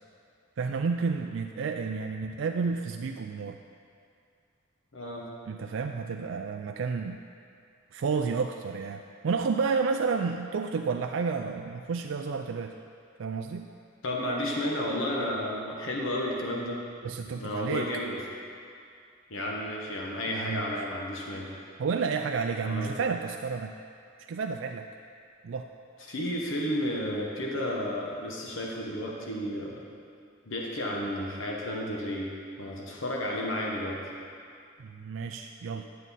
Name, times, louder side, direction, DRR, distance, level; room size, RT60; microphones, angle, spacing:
voice 1, 0.6-3.6 5.5-7.2 7.9-12.8 13.2-13.7 17.0-17.9 20.3-20.7 21.8-23.8 24.3-24.9 25.4-25.7 34.8-35.9, right 5 dB, 75° right, 4 dB, 0.4 m, -31 dB
voice 2, 4.9-5.3 14.0-16.8 17.3-18.2 19.3-21.5 22.6-22.9 26.1-29.8 30.5-32.3 32.6-34.0, left 1 dB, 85° left, -2 dB, 1.2 m, -32 dB
11.0 x 7.5 x 4.1 m, 2.4 s
head